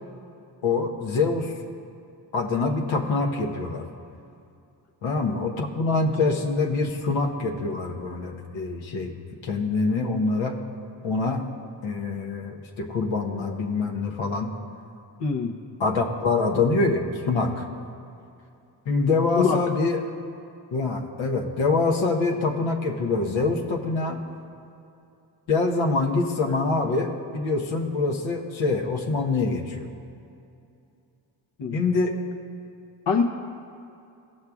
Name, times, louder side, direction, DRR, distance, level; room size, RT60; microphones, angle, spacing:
voice 1, 0.6-1.5 2.3-3.9 5.0-9.1 9.4-10.6 11.0-11.4 11.8-14.5 15.8-17.6 18.9-20.0 20.7-24.2 25.5-29.9 31.7-32.2, left 3 dB, 85° left, 2 dB, 1.0 m, -25 dB
voice 2, 15.2-15.5 19.4-19.6 31.6-31.8 33.1-33.2, left 6 dB, 65° left, 2 dB, 0.9 m, -23 dB
18.0 x 6.4 x 2.4 m, 2.6 s
cardioid pair, 60°, 46 cm